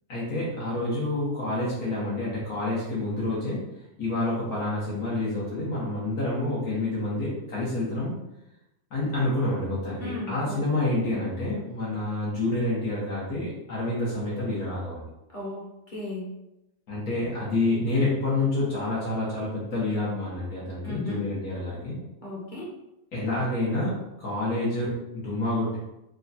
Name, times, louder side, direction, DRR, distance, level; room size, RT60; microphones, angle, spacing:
voice 1, 0.1-3.6 4.0-8.1 8.9-15.1 16.9-22.0 23.1-25.8, left 2 dB, 75° left, -7 dB, 1.6 m, -28 dB
voice 2, 10.0-10.6 15.3-15.6 15.9-16.3 20.8-21.2 22.2-22.7, left 2 dB, 40° left, -4 dB, 1.0 m, -35 dB
3.8 x 2.3 x 4.0 m, 0.89 s
omnidirectional pair, 1.6 m